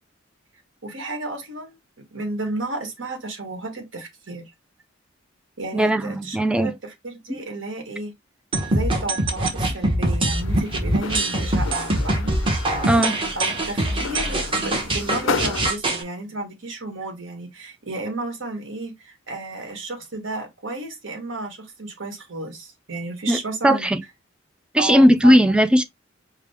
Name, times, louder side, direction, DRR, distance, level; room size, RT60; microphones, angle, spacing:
voice 1, 0.8-1.8 2.1-4.5 5.6-8.1 8.6-12.3 13.0-23.9 24.8-25.3, right 2 dB, 70° right, 1.4 m, -33 dB
voice 2, 5.7-6.7 12.9-13.2 23.3-24.0 24.7-25.8, equal, 5° right, 0.3 m, -17 dB
sound 1, 8.5-16.0, right 1 dB, 25° right, 1.0 m, -23 dB
sound 2, 10.3-15.7, left 5 dB, 70° left, 0.5 m, -33 dB
4.9 x 2.2 x 3.5 m
head